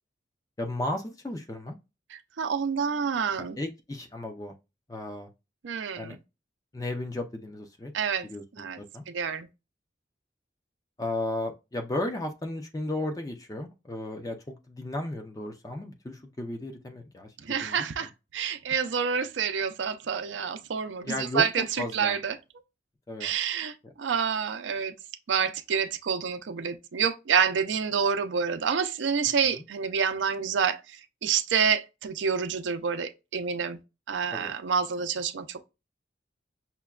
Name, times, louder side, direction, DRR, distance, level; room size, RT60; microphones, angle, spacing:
voice 1, 0.6-1.7 3.6-4.5 4.9-5.3 6.0-6.2 6.7-7.9 8.3-9.0 11.0-17.3 17.6-17.9 21.0-21.5 21.8-22.2 23.1-23.3 23.8-23.9 29.4-29.6 34.3-34.5, left 1 dB, 20° left, 0.4 m, -34 dB
voice 2, 2.1-3.6 5.6-6.2 7.9-8.3 8.6-8.8 9.1-9.5 17.4-22.4 23.2-24.9 25.3-33.8 34.1-35.6, right 6 dB, 85° right, 0.5 m, -28 dB
5.7 x 2.2 x 2.3 m
head